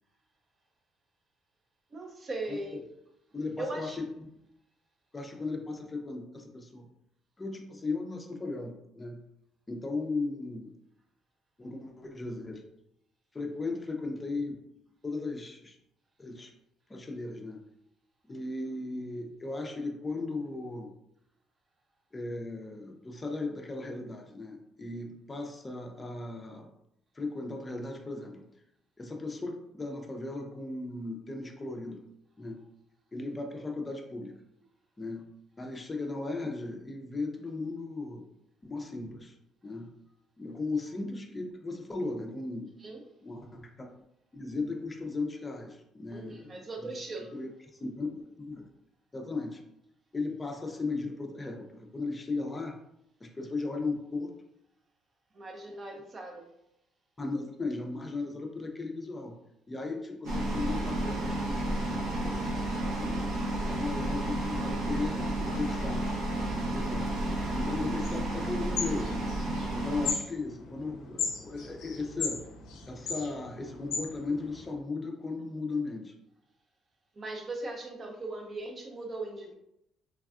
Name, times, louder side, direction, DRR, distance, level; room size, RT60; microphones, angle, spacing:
voice 1, 1.9-2.8 3.6-4.0 40.5-40.6 42.8-43.0 46.1-47.4 55.3-56.5 77.1-79.5, right 2 dB, 35° right, 2 dB, 0.6 m, -39 dB
voice 2, 3.3-4.3 5.1-6.9 7.4-9.2 9.7-10.7 11.6-12.6 13.3-14.6 15.0-15.8 16.2-16.5 16.9-17.6 18.3-20.9 22.1-26.7 27.1-28.5 29.0-32.0 32.4-32.6 33.1-34.4 35.0-35.3 35.6-38.3 38.6-39.4 39.6-39.9 40.4-42.7 43.2-43.9 44.3-46.9 47.3-47.5 47.8-48.7 49.1-49.6 50.1-52.8 53.2-54.3 55.9-56.0 57.2-59.4 59.7-63.2 63.6-66.1 66.4-67.1 67.5-69.1 69.7-72.4 72.9-76.1, left 3 dB, 20° left, 3 dB, 0.5 m, -36 dB
sound 1, 60.2-70.1, right 1 dB, 85° right, 0.8 m, -31 dB
sound 2, 68.0-74.7, left 5 dB, 75° left, 0.5 m, -37 dB
3.4 x 2.2 x 2.4 m, 0.82 s
cardioid pair, 105°, 0 cm